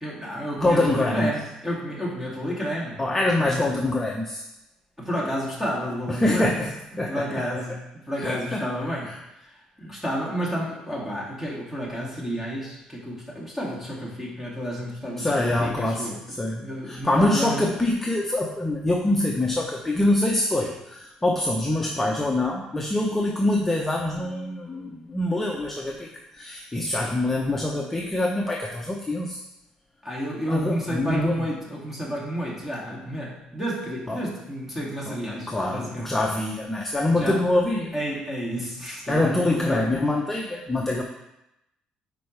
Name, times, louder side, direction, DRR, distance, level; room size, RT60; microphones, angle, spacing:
voice 1, 0.0-3.0 3.4-3.6 5.0-6.6 7.0-7.7 8.1-9.1 9.5-17.7 30.0-36.2 37.1-37.4 37.9-39.9, equal, 5° right, -5 dB, 2.2 m, -31 dB
voice 2, 0.6-1.3 3.0-4.4 6.1-7.4 8.2-8.6 9.1-9.2 15.2-26.1 26.3-29.4 30.5-31.4 34.1-34.2 35.1-37.9 39.1-41.0, left 1 dB, 10° left, -1 dB, 0.7 m, -25 dB
9.1 x 4.6 x 3.2 m, 0.88 s
cardioid pair, 120°, 2 cm